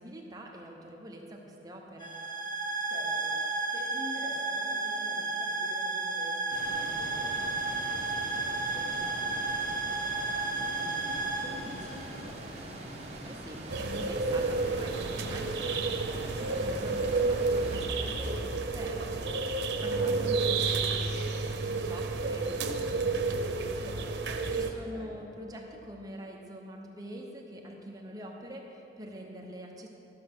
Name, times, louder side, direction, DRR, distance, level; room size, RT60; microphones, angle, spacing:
voice 1, 0.0-2.1 13.3-29.9, right 1 dB, 20° right, 0 dB, 0.8 m, -45 dB
sound 1, 2.0-12.5, right 3 dB, 20° left, 1.8 m, -33 dB
voice 2, 2.9-12.7 19.8-20.2 24.7-25.1, left 1 dB, 70° left, -3 dB, 2.2 m, -47 dB
sound 2, 6.5-17.9, right 1 dB, 35° right, 1.3 m, -43 dB
sound 3, 13.7-24.7, right 3 dB, 85° right, 0.8 m, -30 dB
12.5 x 6.6 x 6.0 m, 2.9 s
head